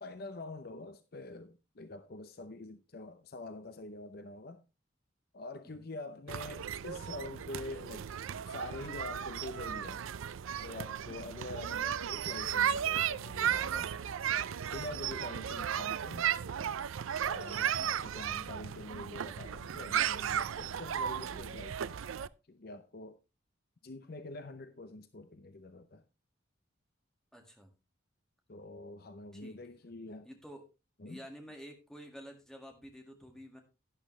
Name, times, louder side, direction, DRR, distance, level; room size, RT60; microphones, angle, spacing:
voice 1, 0.0-4.6 5.3-8.1 8.5-10.0 10.6-13.9 14.7-16.3 17.2-22.1 22.5-23.2 23.8-26.0 28.5-30.3 31.0-31.2, left 2 dB, 50° left, 0.7 m, -45 dB
sound 1, 6.3-22.3, right 9 dB, 85° right, 0.4 m, -35 dB
voice 2, 17.8-18.2 27.3-27.7 29.3-29.6 30.2-30.6 31.1-33.6, equal, 5° left, 1.9 m, -50 dB
11.5 x 10.5 x 3.2 m
head